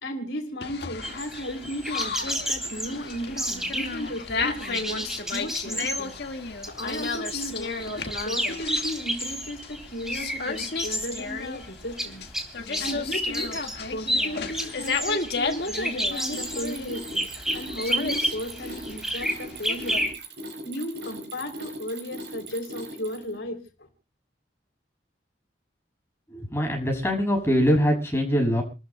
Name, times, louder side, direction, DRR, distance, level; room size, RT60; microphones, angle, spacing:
voice 1, 0.0-6.1 6.7-7.8 8.2-12.2 12.8-13.5 13.9-20.1 20.6-23.9, equal, 80° left, 6 dB, 3.2 m, -35 dB
sound 1, 0.6-20.0, left 4 dB, 60° left, 1.7 m, -33 dB
sound 2, 1.0-20.1, equal, 5° right, 3.2 m, -31 dB
Mechanisms, 15.9-23.4, right 1 dB, 70° right, 7.4 m, -39 dB
voice 2, 26.3-28.6, equal, 15° left, 2 dB, 6.4 m, -23 dB
29.0 x 14.0 x 2.2 m, 0.33 s
head